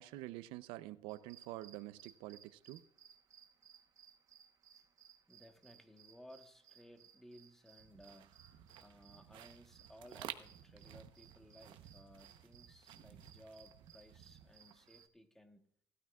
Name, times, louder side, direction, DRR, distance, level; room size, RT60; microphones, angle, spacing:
voice 1, 0.0-2.8, right 16 dB, 90° right, 0.6 m, -47 dB
sound 1, 1.1-15.1, right 8 dB, 40° right, 1.0 m, -64 dB
voice 2, 5.3-8.4 8.8-15.7, equal, 5° left, 1.2 m, -59 dB
sound 2, 7.8-15.1, right 11 dB, 65° right, 0.9 m, -54 dB
17.5 x 13.0 x 2.4 m
cardioid pair, 140°, 9 cm